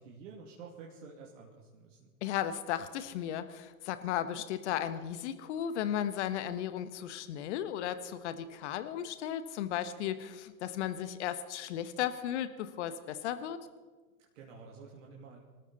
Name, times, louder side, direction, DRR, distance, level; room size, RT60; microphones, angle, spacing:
voice 1, 0.0-2.1 14.3-15.4, right 5 dB, 55° right, -1 dB, 2.6 m, -50 dB
voice 2, 2.2-13.6, left 10 dB, 50° left, 11 dB, 1.3 m, -35 dB
25.0 x 13.5 x 4.1 m, 1.4 s
figure-of-eight pair, 100°, 45 cm